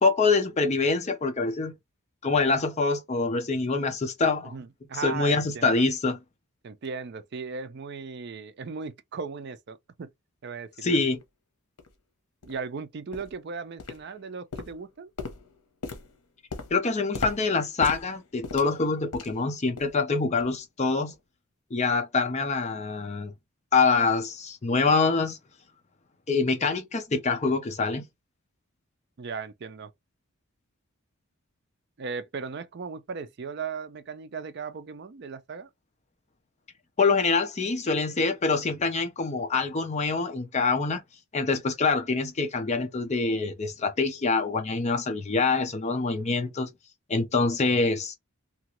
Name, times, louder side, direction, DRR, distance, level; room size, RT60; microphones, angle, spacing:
voice 1, 0.0-1.7 2.2-4.5 5.0-6.2 10.8-11.2 16.7-21.1 21.7-23.3 23.7-25.4 26.3-28.0 37.0-41.0 41.3-46.7 47.1-48.2, left 4 dB, 30° left, 0.5 m, -25 dB
voice 2, 4.4-5.8 6.6-10.1 10.4-11.0 12.4-15.1 29.2-29.9 32.0-35.7, right 5 dB, 50° right, 0.4 m, -37 dB
sound 1, 11.1-11.2 11.8-11.9 12.4-12.6 13.1-13.4 13.8-14.2 14.5-19.5 19.8-20.0 20.4-20.6 21.1-21.2, left 4 dB, 90° left, 0.8 m, -39 dB
2.9 x 2.4 x 2.9 m
head